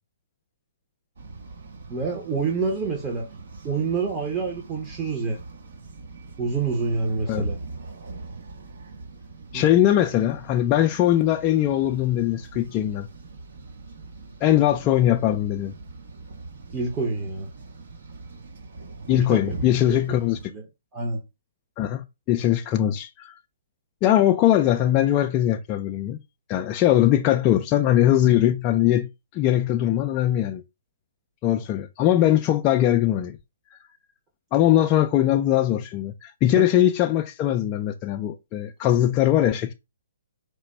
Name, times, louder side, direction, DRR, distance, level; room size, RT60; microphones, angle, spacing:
sound 1, 1.2-20.4, right 3 dB, 65° right, 1.3 m, -41 dB
voice 1, 1.9-3.2 3.6-5.4 6.4-7.6 9.5-9.6 16.7-17.5 19.1-19.4 19.9-20.0 20.5-20.6 20.9-21.2 36.6-36.7, right 4 dB, 20° right, 0.9 m, -27 dB
voice 2, 9.5-13.1 14.4-15.7 19.1-20.4 21.8-23.4 24.0-26.2 26.5-29.1 29.3-30.6 31.4-33.4 34.5-39.7, left 12 dB, 25° left, 0.3 m, -21 dB
4.8 x 2.2 x 4.2 m
hypercardioid pair, 145°, 0 cm